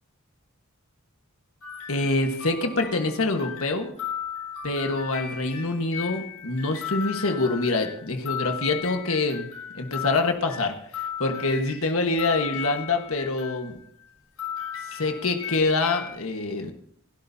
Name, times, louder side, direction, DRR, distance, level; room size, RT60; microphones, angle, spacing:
sound 1, 1.6-14.1 14.4-16.1, left 8 dB, 85° left, 7.3 m, -36 dB
voice 1, 1.9-3.9 4.6-9.5 9.7-13.7 14.9-16.7, left 3 dB, 70° left, 4 dB, 1.5 m, -26 dB
28.0 x 12.5 x 2.8 m, 0.66 s
head